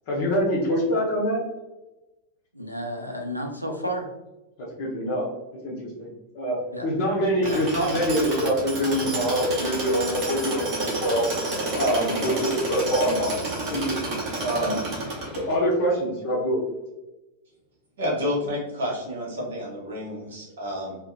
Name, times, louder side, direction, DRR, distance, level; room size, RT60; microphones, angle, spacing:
voice 1, 0.1-1.4 4.8-5.3 5.6-6.6 6.8-11.3 11.7-13.4 13.7-14.8 15.1-16.6, equal, 50° left, -4 dB, 0.6 m, -25 dB
voice 2, 2.5-4.1 6.7-6.9 7.4-7.6 7.9-8.0 12.2-12.3, equal, 90° right, 2 dB, 0.4 m, -32 dB
Tools, 7.4-15.7, right 2 dB, 40° right, 0.7 m, -30 dB
voice 3, 18.0-21.0, left 1 dB, 65° right, -3 dB, 0.9 m, -30 dB
2.7 x 2.0 x 2.3 m, 1.0 s
figure-of-eight pair, 90°, 0 cm